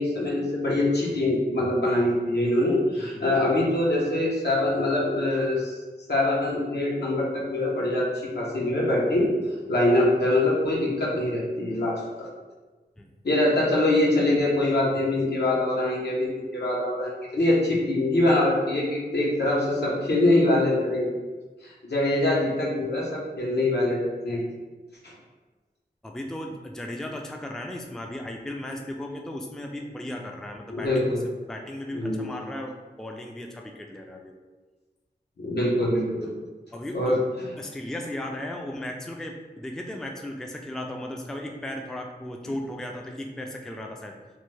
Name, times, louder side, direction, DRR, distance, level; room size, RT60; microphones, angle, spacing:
voice 1, 0.0-5.8 6.1-9.3 9.7-12.3 13.2-21.1 21.6-24.4 25.0-25.1 30.7-31.2 31.9-32.3 35.4-36.3 36.9-37.5, left 1 dB, 75° left, -4 dB, 0.8 m, -24 dB
voice 2, 2.9-3.4 13.0-13.1 26.0-30.9 31.5-34.4 36.7-37.2 37.6-44.1, left 1 dB, 5° left, 2 dB, 0.3 m, -36 dB
3.1 x 2.2 x 3.2 m, 1.3 s
wide cardioid pair, 45°, 17 cm